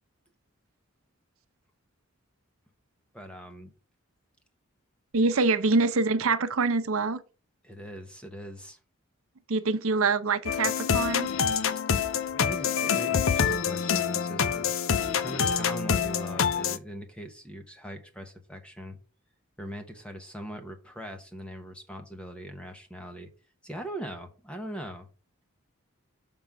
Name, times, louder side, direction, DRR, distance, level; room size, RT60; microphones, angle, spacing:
voice 1, 3.1-3.7 5.2-5.4 7.6-8.8 12.4-14.8 15.0-19.0 19.6-23.3 23.6-25.1, right 1 dB, 5° left, 0.9 m, -41 dB
voice 2, 5.1-7.2 9.5-11.3, right 3 dB, 75° right, 0.7 m, -25 dB
sound 1, 10.5-16.8, left 7 dB, 70° left, 0.6 m, -26 dB
6.9 x 3.7 x 5.8 m
head